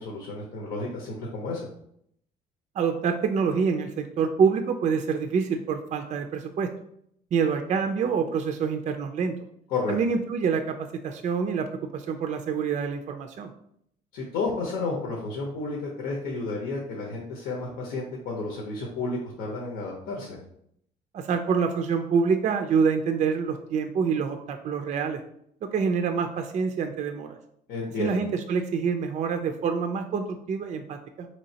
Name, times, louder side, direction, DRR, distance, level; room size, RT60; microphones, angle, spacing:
voice 1, 0.0-1.6 9.7-10.0 14.1-20.4 27.7-28.1, left 3 dB, 75° left, -1 dB, 0.8 m, -31 dB
voice 2, 2.7-6.7 7.3-9.4 9.9-11.7 11.9-13.5 21.1-25.2 25.7-27.4 28.0-31.3, right 6 dB, 45° right, 6 dB, 0.4 m, -26 dB
4.0 x 3.1 x 2.8 m, 0.70 s
cardioid pair, 110°, 17 cm